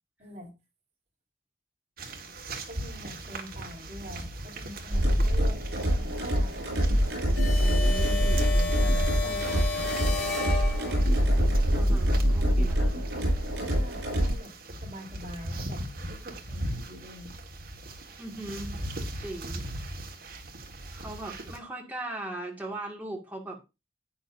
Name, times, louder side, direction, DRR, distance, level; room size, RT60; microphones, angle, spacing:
voice 1, 0.2-0.5 2.7-6.7 8.5-10.4 13.7-14.5 14.8-17.3, equal, 35° right, -2 dB, 4.1 m, -45 dB
sound 1, 2.0-21.6, right 1 dB, 50° right, 1.7 m, -40 dB
sound 2, 4.9-14.3, equal, 70° right, 6.9 m, -25 dB
sound 3, 7.4-11.3, left 3 dB, 65° left, 5.8 m, -32 dB
voice 2, 7.6-8.5 9.2-10.1 11.7-13.0 18.2-18.8 19.2-19.7 20.9-23.6, right 1 dB, 10° right, -1 dB, 2.1 m, -39 dB
11.5 x 9.1 x 2.7 m, 0.26 s
head